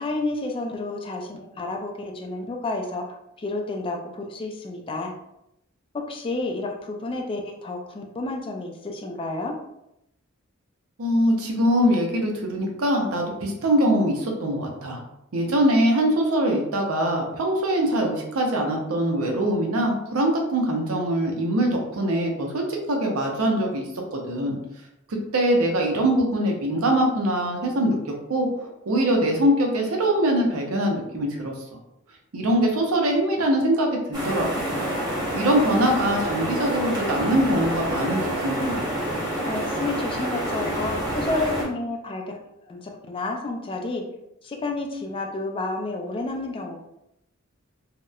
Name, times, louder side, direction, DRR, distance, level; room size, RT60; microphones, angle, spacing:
voice 1, 0.0-5.1 6.1-9.5 39.4-42.4 42.6-44.0 44.4-46.8, left 2 dB, 25° left, 2 dB, 0.3 m, -30 dB
voice 2, 11.0-15.0 15.3-23.8 24.1-24.6 25.1-28.0 28.3-31.5 32.3-34.8 35.3-38.8, right 1 dB, 85° right, 1 dB, 0.6 m, -23 dB
sound 1, 34.1-41.6, right 1 dB, 20° right, 0.8 m, -28 dB
2.8 x 2.0 x 2.3 m, 0.84 s
head